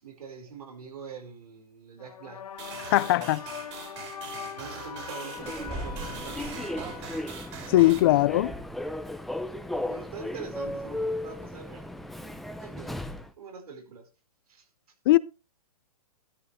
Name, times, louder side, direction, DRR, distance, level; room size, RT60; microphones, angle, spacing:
voice 1, 0.0-2.4 3.0-3.4 4.2-7.3 7.6-8.5 9.9-13.0 13.4-14.1 14.5-14.6, right 5 dB, 80° right, 5.0 m, -44 dB
sound 1, 2.0-8.4, left 8 dB, 80° left, 2.4 m, -43 dB
sound 2, 2.6-8.0, right 6 dB, 50° right, 4.7 m, -42 dB
voice 2, 2.9-3.4 7.7-8.5 15.1-15.2, left 17 dB, 40° left, 0.6 m, -20 dB
Human voice / Subway metro underground, 5.3-13.3, left 1 dB, ahead, 0.6 m, -35 dB
13.0 x 13.0 x 3.3 m
hypercardioid pair, 155°, 19 cm